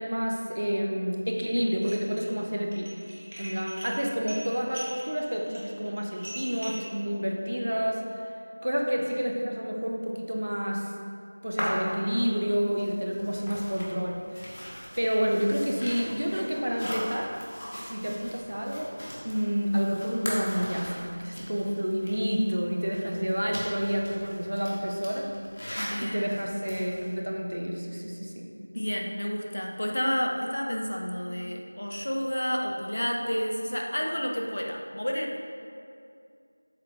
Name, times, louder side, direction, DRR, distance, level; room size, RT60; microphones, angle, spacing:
voice 1, 0.0-3.0 3.4-8.0 8.6-10.9 11.4-14.6 15.0-17.4 17.7-18.9 19.2-25.3 26.0-28.5, equal, 55° right, 1 dB, 0.8 m, -29 dB
Dishes pots and pans, 1.7-2.3 2.6-6.9, equal, 25° right, 0.8 m, -42 dB
sound 1, 11.6-27.1, equal, 30° left, 1.1 m, -40 dB
voice 2, 25.8-26.2 28.6-35.4, equal, 50° left, 0 dB, 0.7 m, -30 dB
6.8 x 4.7 x 3.5 m, 2.4 s
figure-of-eight pair, 175°, 0 cm